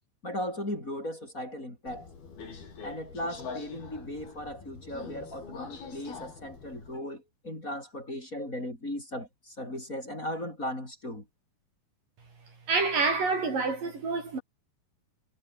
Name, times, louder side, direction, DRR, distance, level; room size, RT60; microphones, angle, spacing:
voice 1, 0.2-2.1 2.8-11.3, left 1 dB, 20° left, 6.5 m, -37 dB
Subway metro underground, 1.9-7.0, left 5 dB, 75° left, 7.6 m, -44 dB
voice 2, 12.7-14.4, right 4 dB, 60° right, 7.8 m, -27 dB
omnidirectional pair, 4.4 m